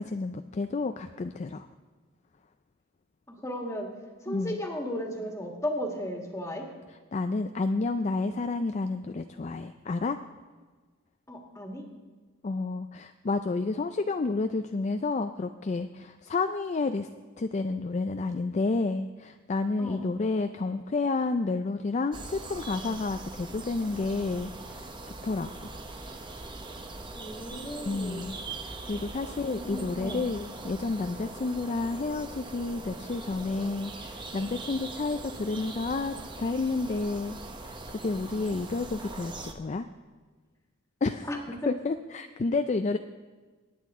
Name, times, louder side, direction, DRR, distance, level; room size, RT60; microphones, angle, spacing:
voice 1, 0.0-1.7 4.3-4.6 7.1-10.2 12.4-17.1 17.4-25.5 27.9-28.4 28.6-37.4 37.6-37.8 38.0-39.9 41.0-41.3 41.7-43.0, left 3 dB, 35° left, 8 dB, 0.4 m, -30 dB
voice 2, 3.3-3.9 4.2-6.7 11.3-11.8 19.8-20.0 27.1-28.2 29.5-30.3 41.3-41.7, equal, 15° left, 1 dB, 1.7 m, -35 dB
sound 1, 22.1-39.5, right 2 dB, 20° right, 0.9 m, -41 dB
23.0 x 9.7 x 3.6 m, 1.4 s
head